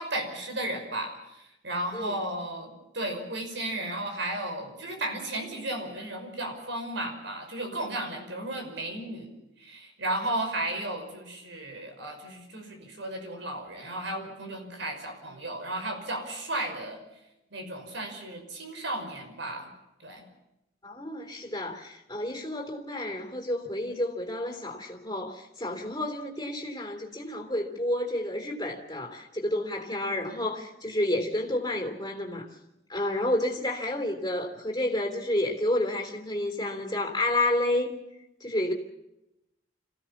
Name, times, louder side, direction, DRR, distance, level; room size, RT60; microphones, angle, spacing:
voice 1, 0.0-9.3 9.6-17.0 17.5-19.7 20.0-20.2, right 1 dB, 65° right, 5 dB, 5.6 m, -34 dB
voice 2, 20.8-32.5 32.9-37.9 38.4-38.7, left 1 dB, 20° left, 1 dB, 3.3 m, -30 dB
27.0 x 16.0 x 7.3 m, 0.92 s
head